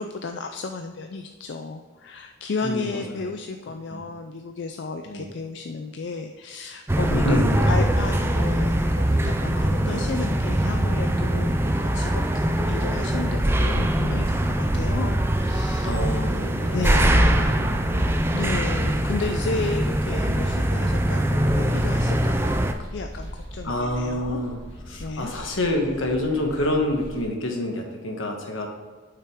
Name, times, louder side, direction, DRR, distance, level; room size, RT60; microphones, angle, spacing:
voice 1, 0.0-16.3 16.7-17.5 18.3-24.4 25.0-25.3, left 4 dB, 60° left, 6 dB, 0.4 m, -33 dB
voice 2, 2.6-3.3 3.9-4.0 5.0-5.3 7.1-7.8 9.8-10.1 15.8-18.3 23.6-24.6 24.9-28.7, left 1 dB, 80° left, 2 dB, 1.4 m, -28 dB
sound 1, 6.9-22.7, right 1 dB, 10° right, 0.4 m, -22 dB
sound 2, 12.5-27.3, equal, 30° left, 1.8 m, -39 dB
7.8 x 5.8 x 3.6 m, 1.4 s
head